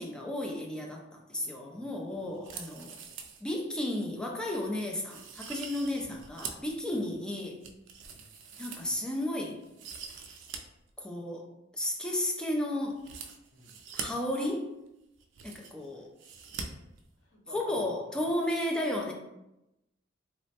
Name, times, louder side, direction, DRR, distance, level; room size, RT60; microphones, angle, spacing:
voice 1, 0.0-3.0 3.4-7.6 8.6-9.6 11.0-11.5 11.7-13.0 13.9-14.7 15.4-16.1 17.5-19.1, left 1 dB, 5° left, 0 dB, 0.4 m, -33 dB
voice 2, 1.3-2.0 2.2-2.4 6.0-6.2 6.9-7.1 8.1-8.3 13.5-13.8 15.9-16.1 17.1-18.3, left 1 dB, 85° left, -1 dB, 0.7 m, -54 dB
sound 1, 2.3-3.4 3.8-3.9 4.4-4.6 5.1-6.7 7.1-9.2 9.6-10.6 10.9-11.0 13.0-14.1 14.9-15.0 15.1-15.9 16.2-16.6 16.9-17.0, right 6 dB, 75° right, 0.3 m, -43 dB
2.9 x 2.1 x 2.8 m, 0.90 s
head